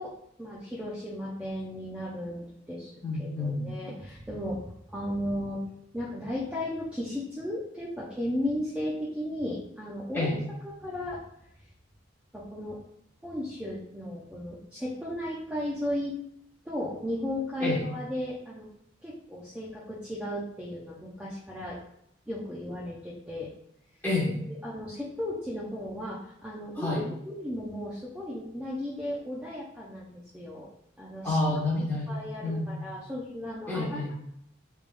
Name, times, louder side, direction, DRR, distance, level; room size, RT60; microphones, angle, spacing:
voice 1, 0.0-5.6 5.9-10.3 10.8-11.2 12.3-12.8 13.2-16.2 16.7-18.7 19.0-21.8 22.3-23.5 24.5-30.7 31.0-31.4 32.1-34.2, left 1 dB, 5° right, -6 dB, 0.5 m, -35 dB
voice 2, 3.0-3.7 10.1-10.4 17.6-17.8 24.0-24.4 26.8-27.0 31.2-32.1 32.4-32.7 33.7-34.1, left 2 dB, 10° left, -8 dB, 1.3 m, -28 dB
3.5 x 3.4 x 2.5 m, 0.76 s
head